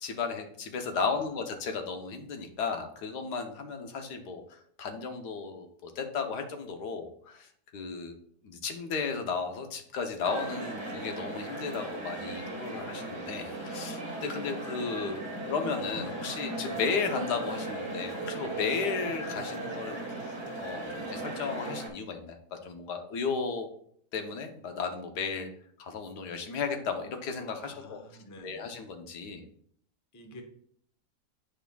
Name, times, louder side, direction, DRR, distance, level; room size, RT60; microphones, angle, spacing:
voice 1, 0.0-8.2 8.4-20.0 20.6-23.7 24.1-25.5 25.8-28.0 28.4-29.5, left 5 dB, 80° left, 5 dB, 1.4 m, -34 dB
voice 2, 0.9-1.3 27.6-28.7 30.1-30.4, left 1 dB, 20° left, 3 dB, 0.4 m, -49 dB
sound 1, 10.2-21.9, right 2 dB, 20° right, 1.1 m, -37 dB
8.9 x 5.1 x 2.3 m, 0.63 s
omnidirectional pair, 1.7 m